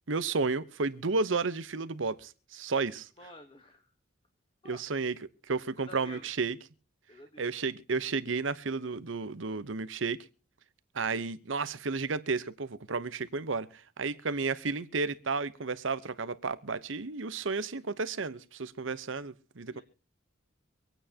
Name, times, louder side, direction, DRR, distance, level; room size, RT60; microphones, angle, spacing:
voice 1, 0.1-3.1 4.6-5.1 5.5-6.5 7.4-10.2 10.9-19.8, right 4 dB, 75° right, 0.9 m, -32 dB
voice 2, 3.2-3.9 4.6-4.8 5.8-6.3 7.1-7.5 19.7-19.8, left 1 dB, 25° left, 1.2 m, -50 dB
25.0 x 9.1 x 2.9 m
head